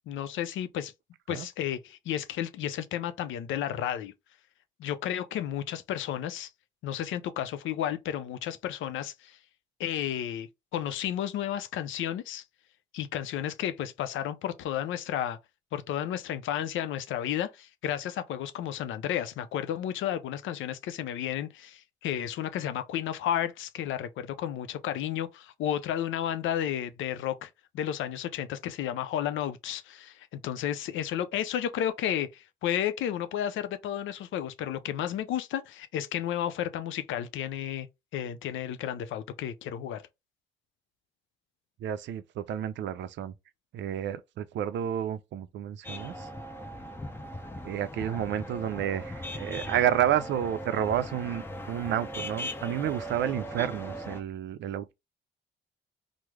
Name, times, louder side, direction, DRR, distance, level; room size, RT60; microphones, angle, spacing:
voice 1, 0.1-0.9 1.3-4.1 4.8-6.5 6.8-9.4 9.8-12.4 12.9-15.4 15.7-27.5 27.7-37.9 38.1-40.0, left 10 dB, 80° left, 0.5 m, -32 dB
voice 2, 41.8-43.3 43.7-46.3 47.6-54.9, right 10 dB, 65° right, 0.4 m, -30 dB
sound 1, 45.8-54.2, equal, 10° left, 0.6 m, -39 dB
3.1 x 2.0 x 3.5 m
cardioid pair, 90°, 20 cm